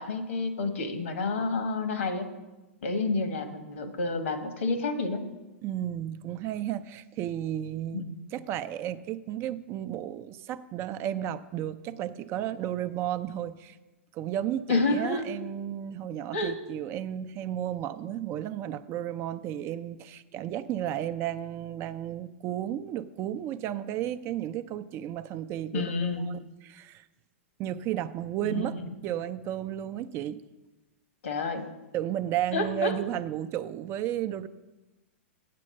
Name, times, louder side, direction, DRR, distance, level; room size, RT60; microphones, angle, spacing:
voice 1, 0.0-2.3 2.8-5.3 7.9-8.2 14.7-15.3 16.3-16.6 25.7-26.3 28.4-28.6 31.2-31.7 32.5-32.9, left 3 dB, 75° left, 8 dB, 1.4 m, -29 dB
voice 2, 5.6-8.0 8.3-13.8 14.1-27.1 27.6-28.8 29.0-30.4 31.9-34.5, right 11 dB, 35° right, 12 dB, 0.5 m, -33 dB
7.6 x 7.6 x 6.4 m, 1.1 s
hypercardioid pair, 115°, 7 cm